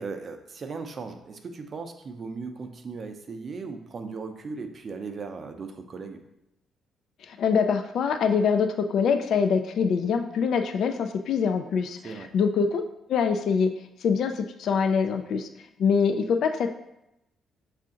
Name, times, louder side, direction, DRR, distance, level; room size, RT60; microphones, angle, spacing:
voice 1, 0.0-6.2 12.0-12.3, right 4 dB, 45° right, 6 dB, 0.5 m, -37 dB
voice 2, 7.2-12.8 13.1-13.7 14.0-15.5 15.8-16.8, left 6 dB, 70° left, 7 dB, 0.3 m, -24 dB
5.5 x 2.5 x 3.7 m, 0.85 s
cardioid pair, 90°, 0 cm